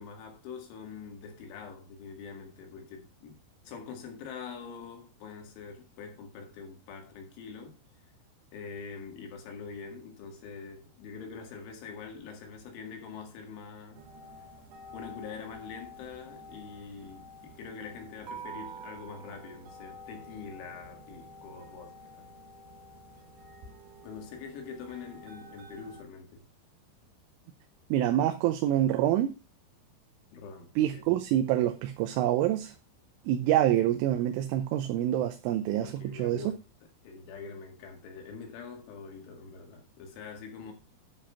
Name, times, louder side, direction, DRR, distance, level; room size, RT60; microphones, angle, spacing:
voice 1, 0.0-7.8 8.5-14.0 14.9-22.2 24.0-26.5 30.3-31.1 35.8-36.6 37.0-40.7, left 5 dB, 75° left, 4.4 m, -44 dB
sound 1, 13.9-26.0, right 1 dB, 60° right, 2.4 m, -48 dB
voice 2, 27.9-29.3 30.8-32.7 33.3-36.4, right 12 dB, 85° right, 3.4 m, -26 dB
10.5 x 5.1 x 5.7 m
omnidirectional pair, 5.5 m